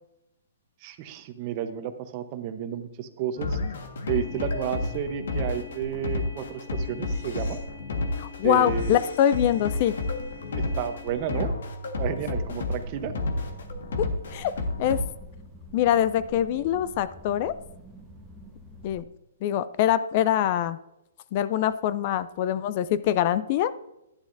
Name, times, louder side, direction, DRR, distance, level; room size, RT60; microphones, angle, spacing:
voice 1, 0.8-3.6 4.1-7.6 8.4-9.0 10.6-11.5 12.0-13.1, right 9 dB, 35° right, 9 dB, 0.8 m, -31 dB
sound 1, 3.4-15.1, left 3 dB, 70° left, 1.5 m, -31 dB
voice 2, 8.2-10.0 14.0-14.5 14.8-15.0 15.7-17.5 18.8-19.0 19.4-20.8 21.3-23.7, left 11 dB, 40° left, 15 dB, 0.4 m, -24 dB
sound 2, 12.1-19.0, right 1 dB, ahead, 1.4 m, -47 dB
11.0 x 9.8 x 2.6 m, 0.88 s
hypercardioid pair, 140°, 0 cm